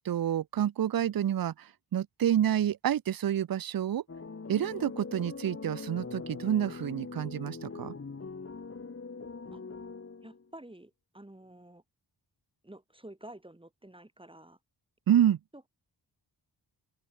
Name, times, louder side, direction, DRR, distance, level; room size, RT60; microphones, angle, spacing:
voice 1, 0.0-4.0 4.5-7.9 15.1-15.4, right 10 dB, 50° right, 0.6 m, -28 dB
sound 1, 4.1-10.5, left 4 dB, 30° left, 1.9 m, -42 dB
voice 2, 10.2-11.8 12.6-14.6 15.5-15.7, right 1 dB, 10° right, 4.0 m, -50 dB
open air
wide cardioid pair, 175°, 46 cm